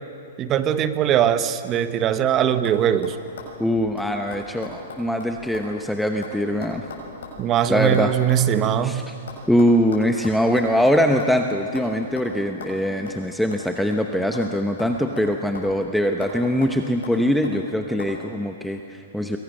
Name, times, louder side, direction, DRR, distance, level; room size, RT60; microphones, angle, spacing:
voice 1, 0.4-3.2 7.4-9.0, right 10 dB, 25° right, 11 dB, 1.1 m, -21 dB
sound 1, 2.1-2.3 2.6-2.8 3.0-5.7 6.0-8.8 9.3-11.4 11.8-11.9 12.2-12.3 12.6-12.8 13.1-13.2 13.5-14.5 14.8-15.8 16.2-16.4 16.6-17.6 18.0-18.1, left 3 dB, 80° left, 6.9 m, -39 dB
voice 2, 3.6-6.8 7.7-8.1 8.8-9.0 9.5-19.4, equal, ahead, 4 dB, 0.9 m, -22 dB
28.0 x 23.0 x 6.6 m, 2.6 s
hypercardioid pair, 150°, 0 cm